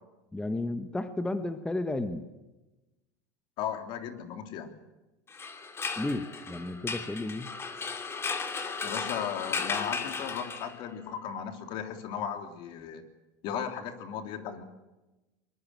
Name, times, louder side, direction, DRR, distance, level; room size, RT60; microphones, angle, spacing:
voice 1, 0.3-2.3 6.0-7.5, left 2 dB, 10° left, 9 dB, 1.5 m, -33 dB
voice 2, 3.6-4.7 8.8-13.0 13.4-14.6, left 8 dB, 55° left, 6 dB, 3.3 m, -36 dB
sound 1, 5.3-11.0, left 4 dB, 25° left, 3.0 m, -35 dB
23.5 x 22.0 x 7.8 m, 1.1 s
supercardioid pair, 105°, 10 cm